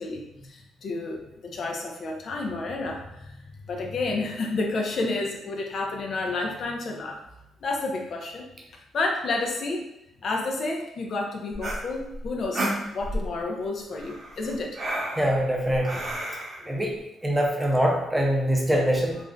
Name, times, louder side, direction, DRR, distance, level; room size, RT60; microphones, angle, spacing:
voice 1, 0.0-7.2 7.6-8.4 8.9-9.9 10.2-12.7 12.9-14.8, left 3 dB, 55° left, 1 dB, 0.4 m, -30 dB
sound 1, 11.5-13.3 14.0-16.6, right 1 dB, 45° right, 0.8 m, -32 dB
voice 2, 15.2-16.0 16.7-16.9 17.2-19.2, equal, 10° right, 0 dB, 0.6 m, -23 dB
2.4 x 2.1 x 3.6 m, 0.85 s
cardioid pair, 90°, 0 cm